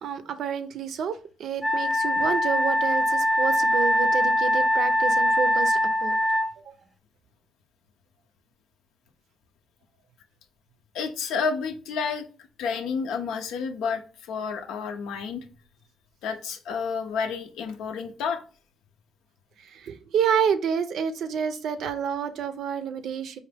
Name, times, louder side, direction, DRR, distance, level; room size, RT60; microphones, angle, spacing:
voice 1, 0.0-6.2 6.7-6.8 19.6-23.4, right 7 dB, 70° right, 10 dB, 0.5 m, -29 dB
Wind instrument woodwind instrument, 1.6-6.5, equal, 10° left, 0.8 m, -22 dB
voice 2, 10.9-12.3 12.6-15.4 16.2-18.4, left 5 dB, 90° left, 7 dB, 0.6 m, -30 dB
4.7 x 2.5 x 3.3 m, 0.38 s
cardioid pair, 90°, 0 cm